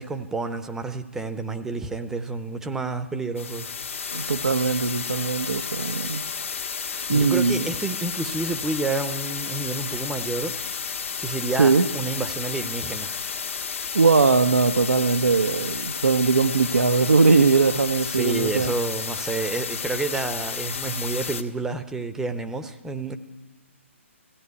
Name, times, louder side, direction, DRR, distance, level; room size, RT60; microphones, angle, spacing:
voice 1, 0.0-3.7 7.1-10.5 11.2-13.3 18.0-23.2, right 3 dB, 5° right, 9 dB, 0.8 m, -29 dB
sound 1, 3.3-21.4, left 6 dB, 70° left, 1.6 m, -32 dB
voice 2, 4.1-6.7 7.1-7.7 11.6-11.9 13.9-18.7, right 4 dB, 85° right, 7 dB, 1.0 m, -20 dB
17.0 x 15.5 x 9.7 m, 1.1 s
hypercardioid pair, 145°, 7 cm